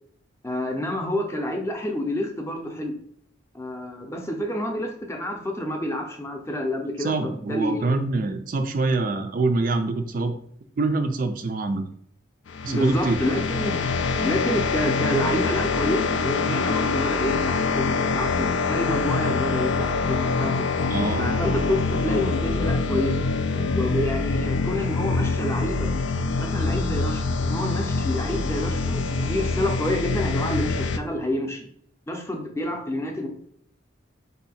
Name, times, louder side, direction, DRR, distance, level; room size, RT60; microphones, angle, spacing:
voice 1, 0.4-2.9 3.5-8.0 11.3-11.4 12.7-13.9 14.2-20.7 21.2-23.2 23.7-25.9 26.4-31.7 32.1-33.3, left 1 dB, 15° left, 2 dB, 0.6 m, -28 dB
voice 2, 7.0-10.4 10.8-11.9 12.6-13.2 20.9-21.3, right 3 dB, 45° right, 7 dB, 0.4 m, -25 dB
sound 1, 12.5-31.0, left 4 dB, 70° left, 0.4 m, -25 dB
4.6 x 2.7 x 4.1 m, 0.66 s
head